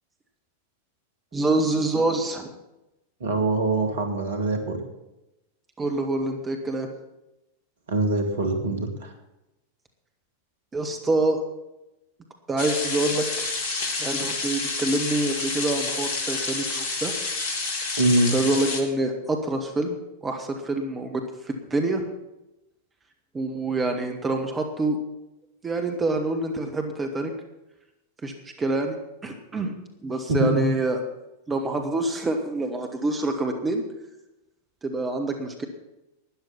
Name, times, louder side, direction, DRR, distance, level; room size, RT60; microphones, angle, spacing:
voice 1, 1.3-2.5 5.8-6.9 10.7-11.4 12.5-13.5 14.0-17.1 18.3-22.0 23.3-25.0 25.6-27.3 28.2-29.0 29.2-29.7 30.0-31.0 31.5-33.8 34.8-35.6, right 2 dB, 15° right, 5 dB, 1.6 m, -26 dB
voice 2, 3.2-4.8 7.9-9.1 18.0-18.3 30.3-30.7, right 2 dB, 60° right, 4 dB, 2.3 m, -23 dB
sound 1, 12.6-18.8, left 3 dB, 50° left, 2.3 m, -29 dB
13.0 x 10.0 x 6.1 m, 0.93 s
figure-of-eight pair, 90°, 0 cm